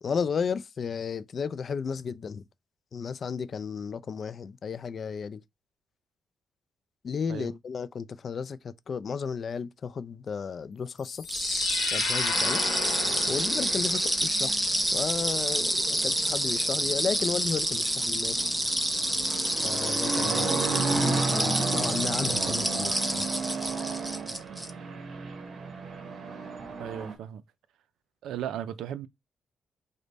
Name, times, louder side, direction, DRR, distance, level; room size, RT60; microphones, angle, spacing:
voice 1, 0.0-2.4 2.9-5.4 7.0-11.2 11.9-12.6 13.3-18.6 19.6-23.3, left 6 dB, 55° left, 0.3 m, -33 dB
sound 1, 11.0-14.1, left 8 dB, 90° left, 1.0 m, -34 dB
sound 2, 11.3-24.7, right 1 dB, 10° right, 0.6 m, -28 dB
sound 3, 12.3-27.2, right 4 dB, 60° right, 0.9 m, -34 dB
voice 2, 26.8-27.4 28.2-29.1, right 10 dB, 85° right, 0.3 m, -36 dB
5.0 x 2.1 x 4.0 m
cardioid pair, 80°, 0 cm